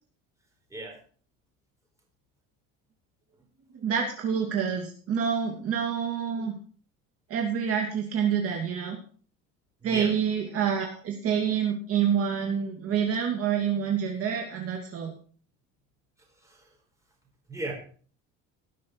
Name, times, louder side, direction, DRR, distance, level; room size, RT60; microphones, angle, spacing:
voice 1, 3.7-6.5 7.3-9.0 9.8-15.1, right 7 dB, 50° right, 1 dB, 2.5 m, -27 dB
voice 2, 9.8-10.1 16.4-16.7 17.5-17.7, right 2 dB, 10° right, 0 dB, 4.3 m, -36 dB
18.5 x 6.3 x 4.7 m, 0.43 s
cardioid pair, 145°, 31 cm